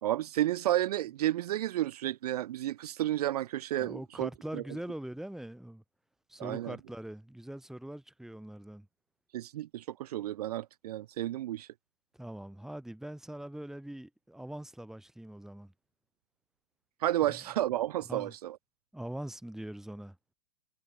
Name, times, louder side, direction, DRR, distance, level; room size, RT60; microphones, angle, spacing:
voice 1, 0.0-4.6 6.4-6.8 9.3-11.7 17.0-18.6, right 13 dB, 65° right, 0.5 m, -32 dB
voice 2, 3.8-5.8 6.3-8.9 12.2-15.7 17.3-17.4 18.1-18.3 18.9-20.2, right 1 dB, ahead, 2.7 m, -42 dB
hypercardioid pair, 115°, 21 cm